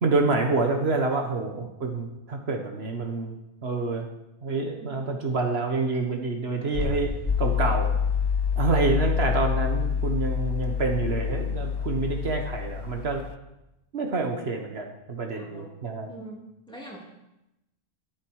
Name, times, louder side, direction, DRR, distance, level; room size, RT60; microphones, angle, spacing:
voice 1, 0.0-4.1 4.4-7.9 8.6-13.2 13.9-16.1, right 3 dB, 75° right, 3 dB, 1.6 m, -27 dB
sound 1, 6.7-12.5 12.7-12.8, left 3 dB, 65° left, 1.7 m, -38 dB
sound 2, 7.3-13.3, left 7 dB, 40° left, 0.3 m, -27 dB
voice 2, 15.3-15.7 16.1-17.0, right 1 dB, 5° left, -4 dB, 3.4 m, -43 dB
13.0 x 12.0 x 4.8 m, 0.93 s
omnidirectional pair, 1.1 m